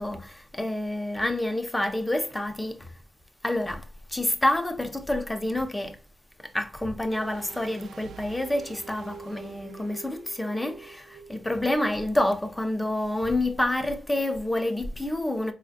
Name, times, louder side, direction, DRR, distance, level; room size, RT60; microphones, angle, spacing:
voice 1, 0.0-2.9 3.4-6.0 6.4-15.5, left 1 dB, 10° left, 0.4 m, -28 dB
sound 1, 7.1-11.9 12.2-12.3, right 6 dB, 85° right, 0.4 m, -46 dB
4.5 x 2.5 x 2.4 m
wide cardioid pair, 180°, 0 cm